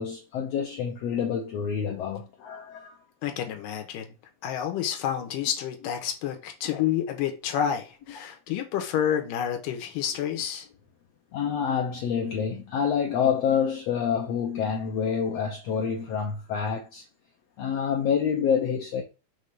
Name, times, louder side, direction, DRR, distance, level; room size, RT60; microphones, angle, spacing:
voice 1, 0.0-3.0 11.3-17.0 17.6-19.0, left 7 dB, 75° left, 1.5 m, -27 dB
voice 2, 3.2-4.1 4.4-10.7, left 9 dB, 90° left, 2.6 m, -29 dB
6.3 x 3.3 x 5.3 m
omnidirectional pair, 3.8 m